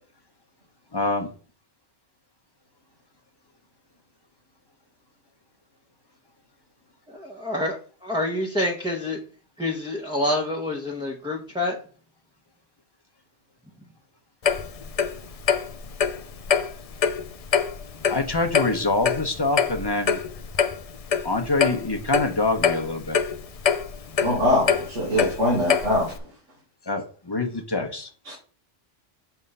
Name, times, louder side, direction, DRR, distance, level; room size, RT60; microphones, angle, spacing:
voice 1, 0.9-1.3 18.1-20.2 21.2-23.2 26.8-28.1, left 2 dB, 20° left, 0.9 m, -25 dB
voice 2, 7.1-7.8 8.0-9.2 9.6-11.8, left 1 dB, 5° right, 0.9 m, -27 dB
Clock, 14.4-26.2, left 7 dB, 45° left, 0.5 m, -25 dB
voice 3, 24.2-26.1 28.2-28.3, left 1 dB, 80° right, 2.7 m, -22 dB
6.9 x 3.6 x 5.4 m
omnidirectional pair, 1.2 m